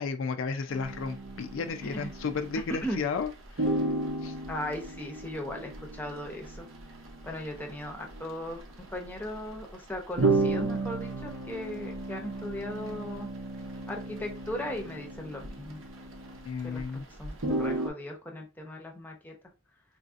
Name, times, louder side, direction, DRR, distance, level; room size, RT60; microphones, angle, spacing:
voice 1, 0.0-3.3 3.6-3.7 4.2-4.4 16.4-17.0, left 5 dB, 65° left, 0.4 m, -33 dB
sound 1, 0.7-2.9 3.2-3.3 3.6-16.8 17.1-17.9, right 2 dB, 75° right, 0.7 m, -34 dB
voice 2, 1.8-2.1 2.8-3.0 4.5-6.7 7.2-8.6 8.9-13.3 13.9-15.8 16.6-19.4, left 1 dB, 10° left, 0.7 m, -38 dB
4.0 x 2.7 x 2.4 m
head